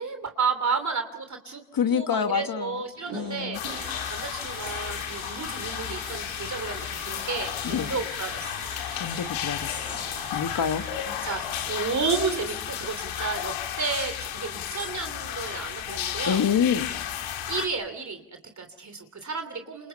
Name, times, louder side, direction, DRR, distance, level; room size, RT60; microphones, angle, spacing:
voice 1, 0.0-1.6 1.9-8.5 11.2-16.4 17.5-19.9, right 5 dB, 35° right, 7 dB, 3.1 m, -32 dB
voice 2, 1.7-2.8 3.1-3.6 7.6-7.9 9.0-10.0 10.3-10.8 16.3-16.9, left 7 dB, 45° left, 8 dB, 1.6 m, -26 dB
sound 1, 2.7-15.2, right 7 dB, 80° right, 6.7 m, -45 dB
sound 2, 3.5-17.7, left 10 dB, 75° left, 2.6 m, -33 dB
28.5 x 25.5 x 5.6 m, 0.84 s
supercardioid pair, 70°, 47 cm